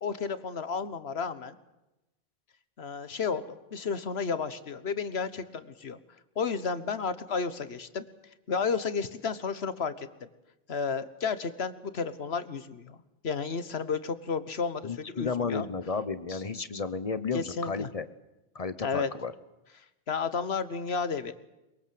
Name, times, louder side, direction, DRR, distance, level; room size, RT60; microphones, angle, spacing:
voice 1, 0.0-1.6 2.8-6.0 6.4-8.0 8.5-10.3 10.7-13.0 13.2-15.7 16.3-16.6 17.3-17.9 18.8-19.1 20.1-21.3, left 5 dB, 80° left, 13 dB, 1.5 m, -32 dB
voice 2, 14.8-18.1 18.5-19.3, left 5 dB, 35° left, 14 dB, 1.1 m, -33 dB
22.5 x 22.5 x 7.8 m, 0.97 s
omnidirectional pair, 1.1 m